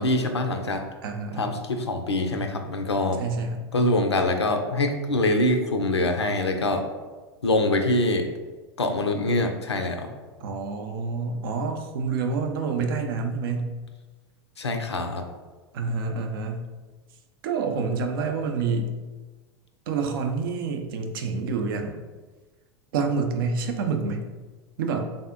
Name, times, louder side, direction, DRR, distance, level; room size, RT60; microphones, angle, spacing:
voice 1, 0.0-0.8 1.4-3.2 3.7-6.8 7.4-8.3 8.8-10.1 14.6-15.2, left 2 dB, 80° left, 5 dB, 0.4 m, -24 dB
voice 2, 1.0-1.6 3.2-3.7 10.4-13.7 15.7-16.6 17.4-18.9 19.9-22.0 22.9-24.3 24.8-25.1, right 4 dB, 55° right, 5 dB, 0.5 m, -28 dB
3.6 x 2.0 x 3.6 m, 1.3 s
figure-of-eight pair, 85°, 14 cm